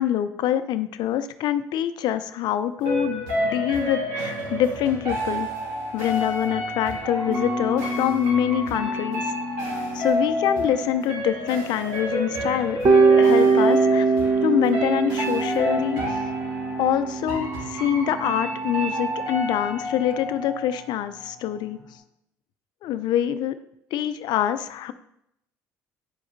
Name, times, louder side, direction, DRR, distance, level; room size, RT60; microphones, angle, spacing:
voice 1, 0.0-5.5 5.9-9.3 9.9-12.8 13.2-14.1 14.4-16.0 16.8-21.8 22.8-23.6 23.9-24.9, left 11 dB, 65° left, 12 dB, 0.5 m, -25 dB
sound 1, 2.8-21.5 21.7-21.8, left 1 dB, 80° right, 2.8 m, -30 dB
sound 2, 7.3-11.7 12.0-12.1 12.8-20.2, right 4 dB, 35° right, 1.0 m, -24 dB
9.5 x 4.9 x 2.6 m, 0.79 s
hypercardioid pair, 70°, 8 cm